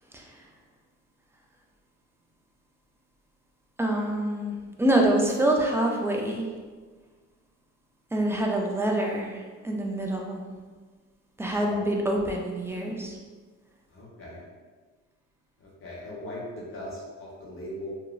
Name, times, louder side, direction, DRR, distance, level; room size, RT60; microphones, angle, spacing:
voice 1, 3.8-6.4 8.1-9.4 9.6-10.4 11.4-13.1, right 1 dB, 10° right, 0 dB, 0.4 m, -26 dB
voice 2, 13.9-14.4 15.6-17.9, left 1 dB, 45° left, -6 dB, 0.9 m, -39 dB
2.9 x 2.5 x 2.3 m, 1.4 s
cardioid pair, 90°, 30 cm